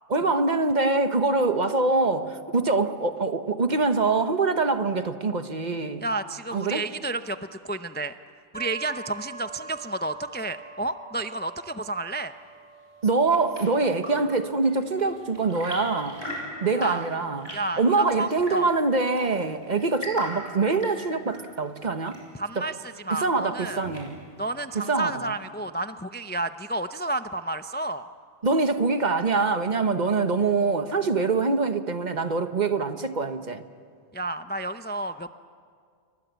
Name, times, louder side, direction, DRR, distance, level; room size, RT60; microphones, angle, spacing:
voice 1, 0.1-6.0 6.5-6.9 13.0-16.2 16.6-22.2 22.6-22.7 23.1-24.2 24.7-25.3 28.4-33.6, right 3 dB, 45° right, 9 dB, 1.2 m, -24 dB
voice 2, 6.0-8.1 8.5-12.3 16.7-17.0 17.5-17.8 18.2-18.7 22.3-23.8 24.4-28.1 34.1-35.3, right 2 dB, 15° left, 10 dB, 0.5 m, -31 dB
sound 1, 8.5-22.2, right 3 dB, 30° left, 2.9 m, -47 dB
Chirp tweet / Engine / Tap, 12.9-24.4, equal, 85° right, 7.6 m, -41 dB
28.5 x 23.5 x 8.2 m, 2.1 s
omnidirectional pair, 1.0 m